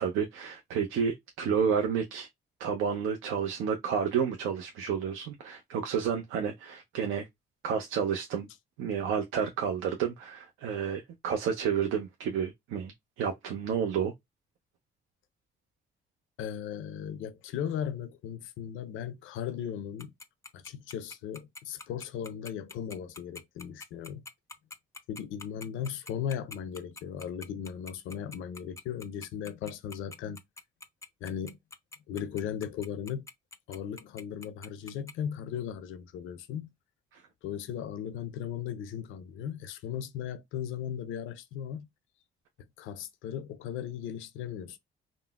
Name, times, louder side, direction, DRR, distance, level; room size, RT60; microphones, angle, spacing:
voice 1, 0.0-2.3 2.6-7.3 7.6-8.5 8.8-12.9 13.2-14.1 37.1-37.2, right 7 dB, 85° right, 0.5 m, -30 dB
voice 2, 16.4-20.1 20.5-24.2 25.1-30.4 31.2-31.6 32.1-33.3 33.7-36.7 37.4-41.9 42.8-44.8, left 9 dB, 90° left, 0.5 m, -37 dB
Tick-tock, 20.0-35.1, left 3 dB, 15° left, 0.4 m, -45 dB
3.7 x 2.0 x 2.3 m
cardioid pair, 90°, 20 cm